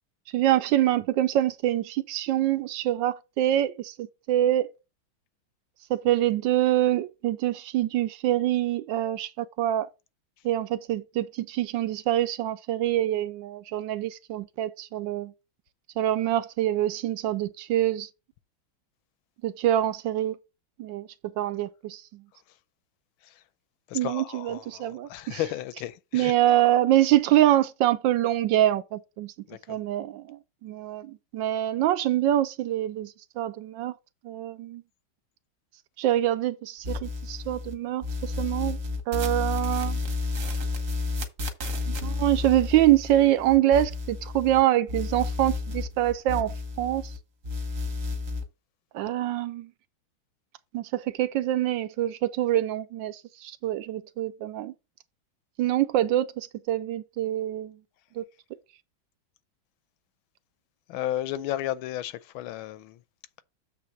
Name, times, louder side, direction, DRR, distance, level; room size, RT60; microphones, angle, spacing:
voice 1, 0.3-4.7 5.9-9.9 10.4-15.3 16.0-18.1 19.4-20.4 20.8-22.2 23.9-25.4 26.1-29.3 29.7-33.9 34.2-34.8 36.0-38.8 39.1-40.0 41.9-47.1 48.9-49.7 50.7-54.7 55.6-57.8 58.2-58.3, right 13 dB, 75° right, 1.2 m, -25 dB
voice 2, 23.9-26.3 29.5-29.8 60.9-63.0, left 13 dB, 90° left, 1.5 m, -33 dB
sound 1, 36.8-37.7 38.0-44.6 44.9-47.2 47.4-48.4, left 3 dB, 45° right, 1.4 m, -31 dB
7.4 x 3.4 x 6.2 m
omnidirectional pair, 2.2 m